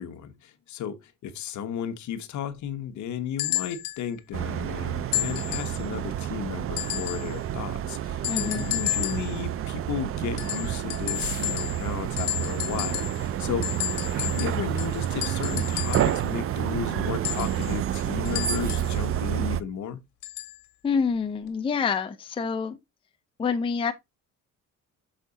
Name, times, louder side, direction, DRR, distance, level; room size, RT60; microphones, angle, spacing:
voice 1, 0.0-13.7 14.1-20.0, left 8 dB, 60° left, 1.1 m, -34 dB
sound 1, 3.4-4.0 5.1-5.8 6.8-7.3 8.2-9.3 10.4-11.9 12.2-13.2 13.6-16.2 17.2-19.0 20.2-20.6 21.5-21.6, left 15 dB, 80° left, 1.4 m, -32 dB
sound 2, 4.3-19.6, right 11 dB, 45° right, 0.5 m, -29 dB
voice 2, 8.3-8.7 20.8-22.8 23.4-23.9, left 6 dB, 15° left, 0.5 m, -27 dB
6.4 x 4.7 x 4.0 m
cardioid pair, 145°, 33 cm